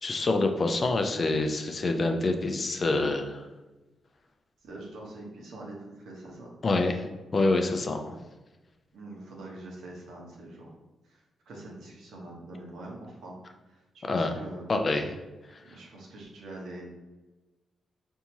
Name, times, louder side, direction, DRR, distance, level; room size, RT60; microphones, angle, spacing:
voice 1, 0.0-3.4 6.6-7.1 7.3-8.2 14.1-14.3 14.7-15.1, left 2 dB, 50° left, 5 dB, 0.5 m, -26 dB
voice 2, 4.6-6.5 8.9-10.7 11.0-13.4 13.7-14.7 15.6-16.8, right 2 dB, 75° right, -2 dB, 1.0 m, -44 dB
4.4 x 2.7 x 2.8 m, 1.1 s
supercardioid pair, 45°, 0 cm